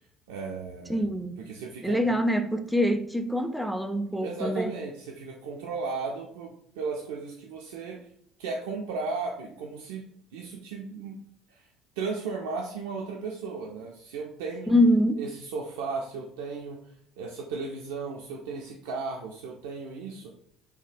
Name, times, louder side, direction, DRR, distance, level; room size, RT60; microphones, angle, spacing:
voice 1, 0.3-1.1 1.4-2.1 4.2-8.0 8.4-10.1 10.3-11.2 11.5-11.6 12.0-14.8 15.2-16.8 17.2-20.3, right 4 dB, 75° right, 0.3 m, -35 dB
voice 2, 0.9-1.4 1.8-4.7 14.7-15.3, equal, ahead, 0.4 m, -24 dB
3.3 x 2.2 x 2.5 m
figure-of-eight pair, 55°, 0 cm